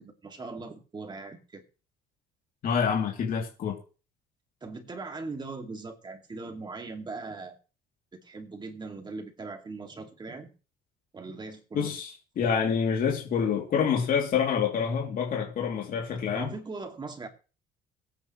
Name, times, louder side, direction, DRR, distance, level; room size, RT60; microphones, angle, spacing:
voice 1, 0.0-1.6 4.6-7.6 8.2-10.5 11.1-11.9 16.3-17.3, right 3 dB, 25° right, 2.4 m, -40 dB
voice 2, 2.6-3.8 11.7-16.5, left 7 dB, 55° left, 3.1 m, -27 dB
23.0 x 9.2 x 3.2 m
cardioid pair, 110°, 17 cm